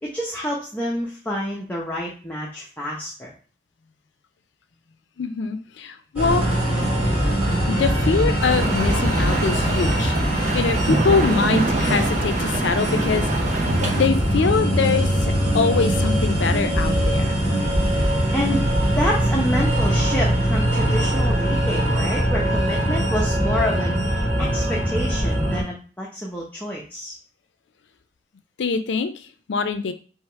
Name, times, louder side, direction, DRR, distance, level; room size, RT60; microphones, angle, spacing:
voice 1, 0.0-3.3 18.3-18.7 18.9-27.1, equal, 10° left, -4 dB, 0.7 m, -28 dB
voice 2, 5.2-6.5 7.7-13.6 13.9-17.3 28.6-29.9, left 5 dB, 75° left, 9 dB, 0.4 m, -24 dB
sound 1, 6.2-25.6, equal, 10° right, 2.2 m, -22 dB
sound 2, 8.4-14.1, right 2 dB, 40° right, 0.8 m, -26 dB
3.4 x 2.9 x 4.5 m, 0.39 s
head